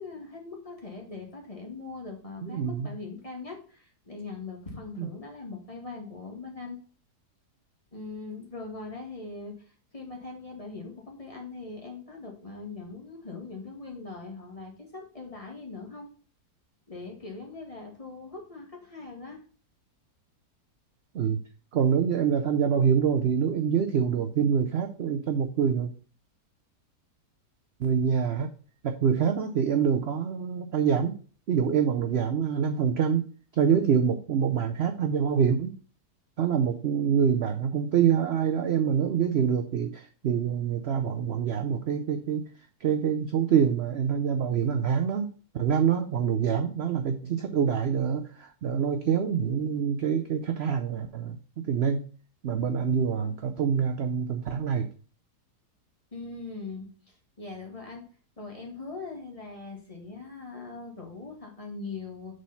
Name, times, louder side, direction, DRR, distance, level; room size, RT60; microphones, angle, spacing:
voice 1, 0.0-6.8 7.9-16.1 16.9-19.4 56.1-58.0 58.4-62.3, left 3 dB, 20° left, 0 dB, 1.7 m, -41 dB
voice 2, 2.4-2.9 5.0-5.1 21.1-21.4 21.7-25.9 27.8-28.5 28.8-31.1 31.5-33.2 33.6-35.7 36.4-42.4 42.8-45.3 45.5-51.4 51.7-52.0 52.4-54.9, right 7 dB, 65° right, 6 dB, 0.6 m, -25 dB
6.3 x 4.2 x 5.5 m, 0.41 s
omnidirectional pair, 1.8 m